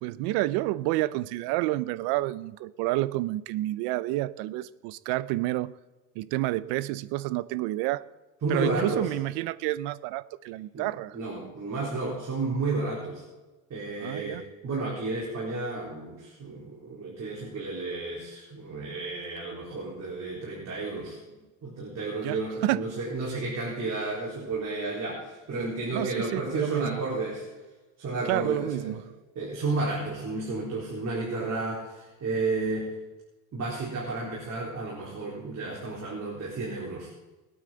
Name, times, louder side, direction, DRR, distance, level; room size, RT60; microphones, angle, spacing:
voice 1, 0.0-5.8 6.2-8.0 8.5-11.2 14.0-14.4 22.2-23.0 25.9-27.0 28.3-29.1, right 17 dB, 75° right, 0.7 m, -29 dB
voice 2, 8.4-9.1 10.7-10.9 11.1-13.2 13.7-27.4 28.0-28.9 29.4-32.9 33.5-37.1, right 3 dB, 40° right, 4.1 m, -32 dB
23.0 x 8.9 x 4.0 m
supercardioid pair, 110°, 40 cm